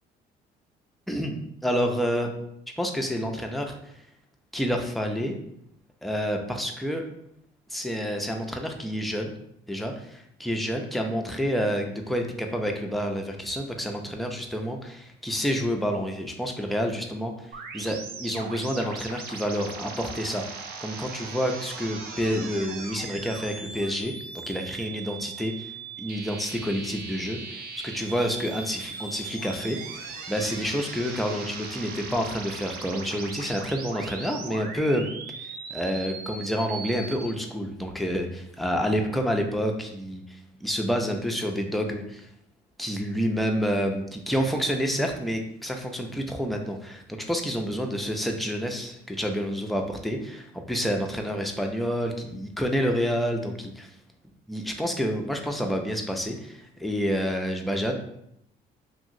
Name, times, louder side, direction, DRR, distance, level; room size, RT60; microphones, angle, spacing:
voice 1, 1.1-2.3 2.8-3.9 4.5-5.4 6.0-7.0 7.7-9.3 9.7-24.1 24.5-25.7 26.0-35.1 35.4-42.3 42.8-53.9 54.5-58.0, equal, ahead, 3 dB, 0.4 m, -29 dB
sound 1, 17.5-37.3, right 4 dB, 60° right, 0.5 m, -39 dB
2.8 x 2.7 x 2.5 m, 0.76 s
cardioid pair, 110°, 17 cm